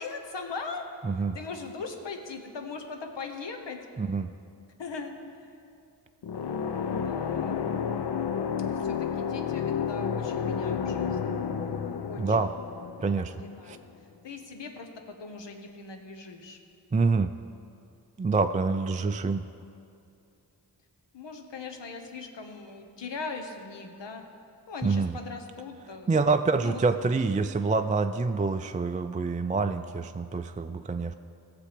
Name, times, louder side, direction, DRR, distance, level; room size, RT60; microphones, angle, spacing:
voice 1, 0.0-0.8 1.2-3.8 4.8-5.6 6.7-7.6 8.7-11.2 12.0-12.4 13.4-13.9 14.2-16.6 21.1-24.2 24.7-26.2 26.6-26.8, left 4 dB, 90° left, 4 dB, 1.1 m, -40 dB
voice 2, 1.0-1.4 4.0-4.3 12.2-12.5 13.0-13.4 13.6-13.8 16.9-17.4 18.2-19.5 24.8-25.2 26.1-31.1, right 4 dB, 20° right, 7 dB, 0.3 m, -26 dB
sound 1, 6.2-13.9, left 7 dB, 70° left, 0.6 m, -31 dB
16.5 x 6.9 x 5.0 m, 2.5 s
cardioid pair, 60°, 42 cm